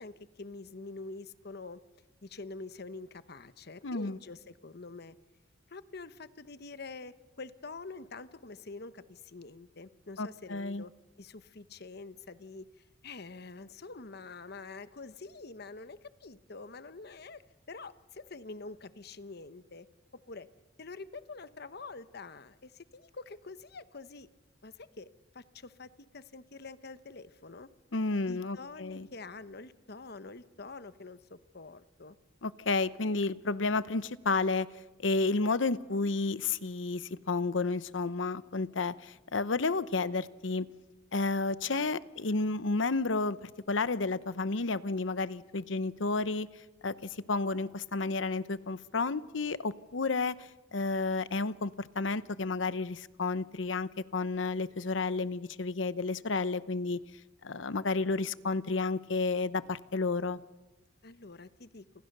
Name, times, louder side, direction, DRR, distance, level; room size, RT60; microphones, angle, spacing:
voice 1, 0.0-1.8 2.2-5.1 5.7-10.9 11.2-12.7 13.0-17.4 17.7-19.9 20.1-20.5 20.8-24.3 24.6-27.7 28.3-32.2 61.0-61.8, left 3 dB, 55° left, 13 dB, 1.1 m, -46 dB
voice 2, 3.8-4.2 10.2-10.8 27.9-29.1 32.4-34.7 35.0-40.7 41.1-46.5 46.8-57.0 57.4-60.4, left 3 dB, 80° left, 16 dB, 0.9 m, -31 dB
30.0 x 27.5 x 6.8 m, 1.1 s
head